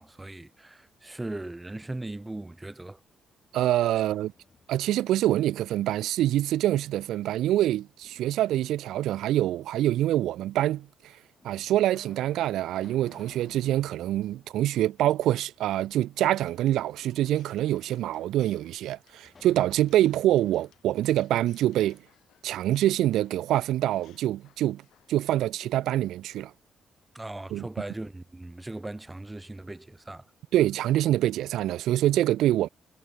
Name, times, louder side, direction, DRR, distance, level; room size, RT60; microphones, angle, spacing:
voice 1, 0.0-3.0 27.1-30.3, right 2 dB, 15° right, 0.6 m, -38 dB
voice 2, 3.5-4.3 4.7-10.9 11.4-22.0 22.4-24.8 25.1-26.5 27.5-27.7 30.5-32.7, right 13 dB, 85° right, 0.4 m, -25 dB
sound 1, 4.3-5.1 5.5-6.8 8.0-8.8 9.7-9.8 10.7-10.8 11.4-15.5 15.8-15.9 19.2-22.0, left 4 dB, 30° left, 2.8 m, -57 dB
sound 2, 16.3-25.3, left 13 dB, 80° left, 5.3 m, -64 dB
cardioid pair, 90°, 0 cm